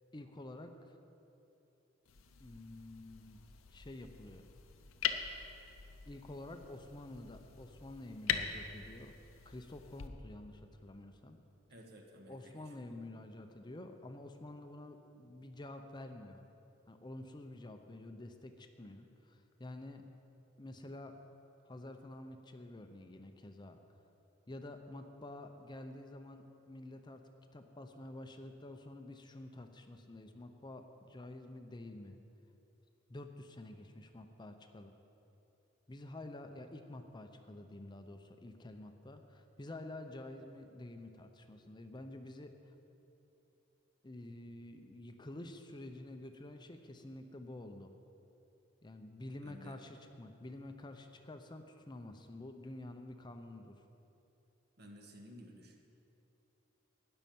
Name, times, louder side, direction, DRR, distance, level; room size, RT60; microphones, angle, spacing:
voice 1, 0.1-0.9 2.4-4.5 6.1-9.2 9.4-11.4 12.3-16.4 16.9-20.0 20.6-21.1 21.7-23.8 24.5-27.2 27.5-32.2 33.1-35.0 35.9-42.7 44.0-48.0 48.8-53.9, left 1 dB, 20° left, 6 dB, 0.6 m, -49 dB
sound 1, 2.1-10.1, left 8 dB, 85° left, 0.7 m, -42 dB
voice 2, 11.7-13.0 49.4-49.8 54.8-55.8, equal, 50° right, 2 dB, 1.4 m, -55 dB
12.5 x 5.5 x 9.2 m, 2.9 s
head